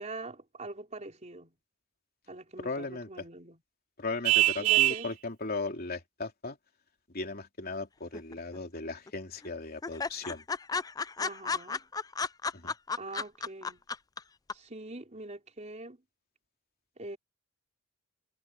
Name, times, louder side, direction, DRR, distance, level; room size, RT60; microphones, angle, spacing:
voice 1, 0.0-1.5 2.3-3.6 4.6-5.1 11.2-11.9 13.0-13.8 14.5-16.0 17.0-17.2, right 2 dB, 35° right, 3.8 m, -43 dB
voice 2, 2.6-3.2 4.0-6.6 7.1-10.4 12.5-12.7, left 3 dB, 45° left, 3.4 m, -37 dB
Vehicle horn car horn honking, 4.2-5.1, right 15 dB, 85° right, 0.4 m, -23 dB
sound 1, 8.1-8.8 9.1-9.2 9.4-9.5 9.8-14.2 14.5-14.6, left 4 dB, 20° left, 0.4 m, -33 dB
head